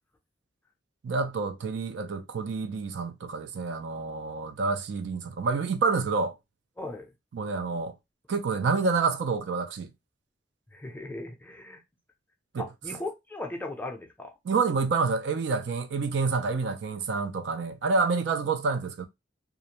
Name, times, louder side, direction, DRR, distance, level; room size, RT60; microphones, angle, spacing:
voice 1, 1.0-6.3 7.3-7.9 8.3-9.9 12.5-12.6 14.5-19.1, right 4 dB, 70° right, 0.4 m, -28 dB
voice 2, 6.8-7.1 10.7-11.8 12.6-14.3, left 2 dB, 10° left, 0.5 m, -37 dB
2.5 x 2.0 x 2.8 m
head